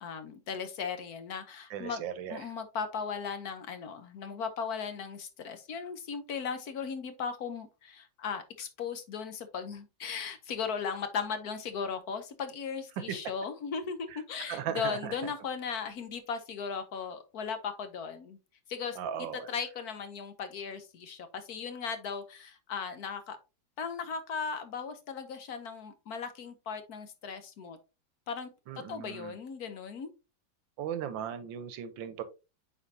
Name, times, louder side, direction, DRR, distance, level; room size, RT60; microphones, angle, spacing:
voice 1, 0.0-2.0 2.3-18.4 18.7-19.0 19.5-23.4 23.8-27.8 28.3-28.5 28.9-30.1, left 6 dB, 60° left, 9 dB, 1.2 m, -37 dB
voice 2, 1.7-2.5 13.1-13.2 14.1-15.1 19.0-19.5 28.7-29.4 30.8-32.2, right 9 dB, 85° right, 13 dB, 1.5 m, -37 dB
8.3 x 4.6 x 2.7 m, 0.29 s
omnidirectional pair, 2.0 m